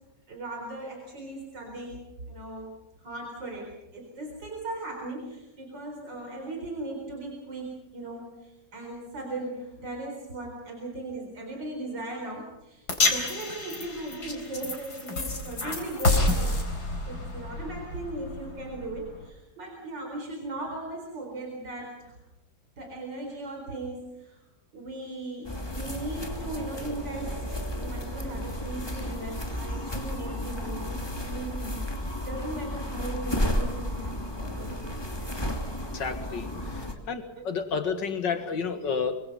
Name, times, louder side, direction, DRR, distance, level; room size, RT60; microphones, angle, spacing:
voice 1, 0.3-2.0 2.3-22.2 22.8-24.4 24.7-34.8 36.6-36.7 37.4-37.5 38.8-38.9, right 2 dB, 80° right, 1 dB, 4.8 m, -38 dB
sound 1, 12.9-19.3, left 2 dB, 60° left, 4.6 m, -29 dB
sound 2, 25.4-36.9, equal, 15° left, 2.7 m, -33 dB
voice 2, 35.9-36.5 36.7-39.2, left 5 dB, 85° left, 8 dB, 2.6 m, -30 dB
25.5 x 24.0 x 5.5 m, 0.93 s
omnidirectional pair, 1.9 m